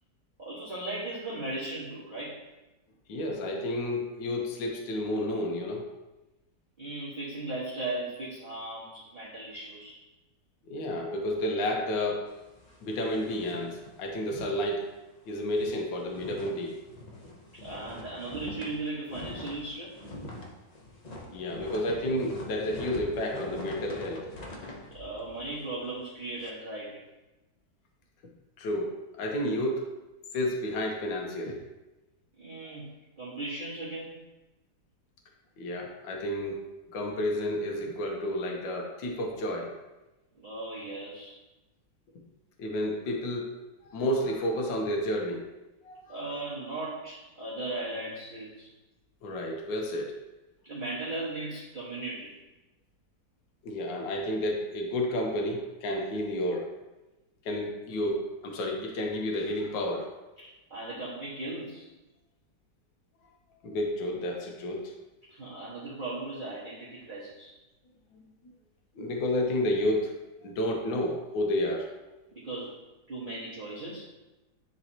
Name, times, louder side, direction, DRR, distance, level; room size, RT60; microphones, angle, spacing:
voice 1, 0.4-2.4 6.8-10.0 17.6-20.0 24.9-27.0 32.4-32.9 33.2-34.3 40.4-41.3 46.1-48.7 50.6-52.3 60.4-61.9 65.3-67.5 72.3-72.7 73.1-74.1, right 2 dB, 30° right, -10 dB, 1.4 m, -37 dB
voice 2, 3.1-5.8 10.7-12.3 12.8-14.9 15.3-16.8 21.3-24.5 28.6-29.9 30.3-31.6 35.6-36.7 36.9-39.7 42.6-43.5 43.8-45.5 45.8-46.2 49.2-50.2 53.6-56.7 57.5-60.1 63.6-64.9 68.1-68.2 69.0-70.1 70.4-71.9, left 1 dB, 70° left, 0 dB, 1.7 m, -31 dB
sound 1, 12.2-14.5 14.8-15.0 15.3-26.5, left 1 dB, 90° left, 0.3 m, -44 dB
10.5 x 4.0 x 2.9 m, 1.0 s
omnidirectional pair, 2.2 m